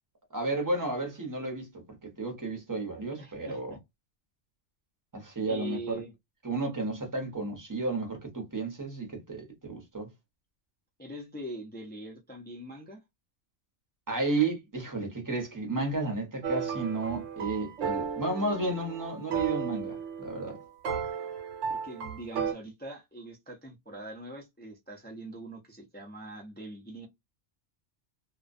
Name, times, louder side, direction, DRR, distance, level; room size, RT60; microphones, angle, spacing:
voice 1, 0.3-1.7 2.0-3.8 5.1-6.0 6.4-10.1 14.1-20.6, right 3 dB, 20° right, 0.7 m, -32 dB
voice 2, 3.2-3.8 5.4-6.1 11.0-13.0 21.7-27.1, right 1 dB, 15° left, 0.3 m, -43 dB
sound 1, 16.4-22.5, right 6 dB, 90° right, 1.0 m, -34 dB
2.3 x 2.2 x 2.5 m
omnidirectional pair, 1.2 m